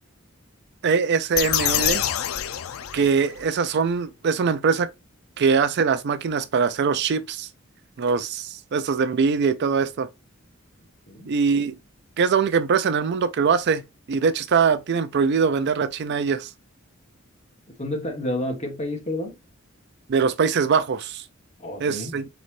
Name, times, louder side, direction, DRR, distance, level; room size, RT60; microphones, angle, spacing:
voice 1, 0.8-2.0 2.9-4.9 5.4-7.5 8.0-10.1 11.3-11.7 12.2-13.8 14.1-16.5 20.1-21.2 21.8-22.3, right 5 dB, 55° right, 0.4 m, -22 dB
sound 1, 1.3-3.5, left 11 dB, 90° left, 0.4 m, -26 dB
voice 2, 17.8-19.4 21.6-22.1, left 1 dB, 30° left, 1.3 m, -30 dB
4.3 x 3.9 x 3.1 m
head